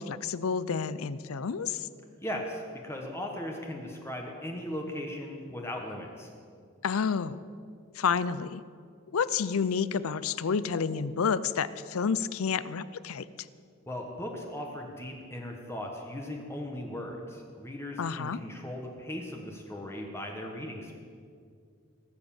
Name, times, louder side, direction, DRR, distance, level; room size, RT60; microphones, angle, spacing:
voice 1, 0.0-1.9 6.8-7.4 8.0-8.6 9.1-13.3 18.0-18.4, left 6 dB, 85° left, 16 dB, 0.5 m, -29 dB
voice 2, 2.2-6.3 13.9-20.9, left 1 dB, 10° left, 1 dB, 1.3 m, -38 dB
19.0 x 8.1 x 7.2 m, 2.3 s
head